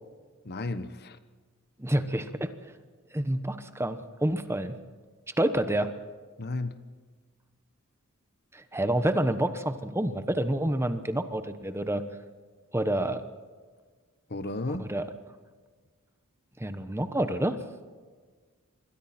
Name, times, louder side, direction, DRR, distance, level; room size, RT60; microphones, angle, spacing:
voice 1, 0.4-1.2 6.4-6.7 14.3-14.9, left 2 dB, 45° left, 12 dB, 1.1 m, -33 dB
voice 2, 1.8-2.5 3.1-4.7 5.4-5.9 8.5-12.0 12.7-13.2 14.7-15.1 16.6-17.6, right 1 dB, 10° right, 10 dB, 1.1 m, -28 dB
27.0 x 22.5 x 4.4 m, 1.5 s
head